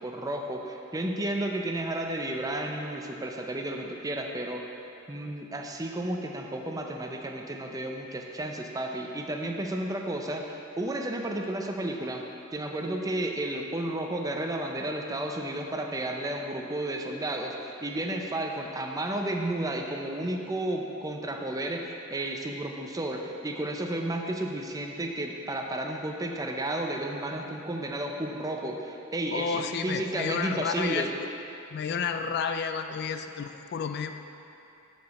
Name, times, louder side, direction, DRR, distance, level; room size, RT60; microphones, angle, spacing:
voice 1, 0.0-4.6 5.1-12.2 12.5-31.1, right 1 dB, 15° right, 2 dB, 0.5 m, -32 dB
voice 2, 29.3-31.1 31.7-34.1, left 6 dB, 50° left, 7 dB, 0.3 m, -31 dB
11.0 x 4.8 x 4.1 m, 2.8 s
head